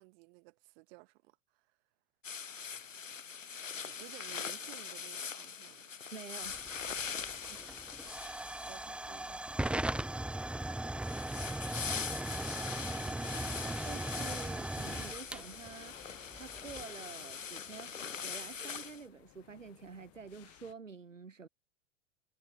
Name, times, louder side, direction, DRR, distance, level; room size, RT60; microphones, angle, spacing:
voice 1, 0.0-1.7 3.8-5.9 7.5-8.3 8.7-9.7 12.9-13.7, right 29 dB, 55° right, 4.1 m, -57 dB
sound 1, 2.2-9.0 11.0-19.0, left 6 dB, 90° left, 1.2 m, -42 dB
voice 2, 6.1-6.6 13.6-21.5, right 5 dB, 90° right, 1.6 m, -49 dB
Hiss / Fire / Tick, 6.4-16.8, right 1 dB, 5° right, 0.8 m, -39 dB
sound 2, 14.1-20.7, left 20 dB, 40° left, 2.0 m, -61 dB
figure-of-eight pair, 90°, 37 cm